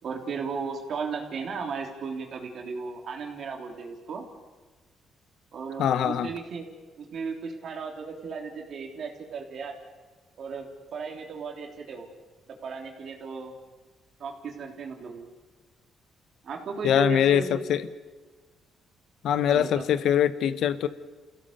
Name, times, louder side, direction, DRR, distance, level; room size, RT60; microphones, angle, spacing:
voice 1, 0.0-4.2 5.5-6.7 7.0-9.7 10.4-12.1 12.5-13.5 14.2-15.3 16.4-17.7 19.4-19.9, right 4 dB, 60° right, 2 dB, 3.4 m, -35 dB
voice 2, 5.8-6.3 16.8-17.8 19.2-20.9, left 9 dB, 75° left, 14 dB, 1.0 m, -23 dB
28.5 x 16.0 x 7.0 m, 1.3 s
cardioid pair, 90°, 0 cm